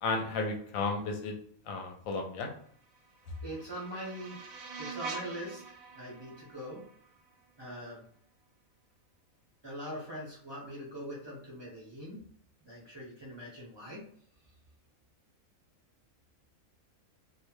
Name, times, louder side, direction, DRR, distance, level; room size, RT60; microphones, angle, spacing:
voice 1, 0.0-1.3 1.7-2.5, left 3 dB, 75° left, 2 dB, 1.0 m, -33 dB
sound 1, 2.8-7.8, right 4 dB, 75° right, 1.0 m, -45 dB
voice 2, 3.4-4.4 4.8-6.8 7.6-8.0 9.6-12.2 12.6-14.0, equal, 30° right, -6 dB, 0.5 m, -42 dB
2.5 x 2.1 x 3.0 m, 0.63 s
omnidirectional pair, 1.5 m